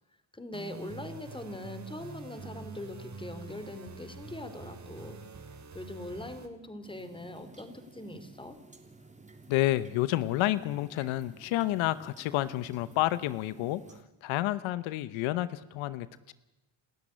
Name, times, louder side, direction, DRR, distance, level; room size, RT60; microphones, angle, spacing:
voice 1, 0.3-5.2 5.7-8.6, left 1 dB, 10° left, 10 dB, 3.2 m, -42 dB
sound 1, 0.5-6.5, right 4 dB, 40° right, 3.1 m, -46 dB
sound 2, 6.8-14.0, right 3 dB, 15° right, 3.0 m, -53 dB
voice 2, 9.5-16.3, left 15 dB, 90° left, 16 dB, 0.9 m, -30 dB
28.0 x 13.0 x 10.0 m, 1.0 s
cardioid pair, 85°, 45 cm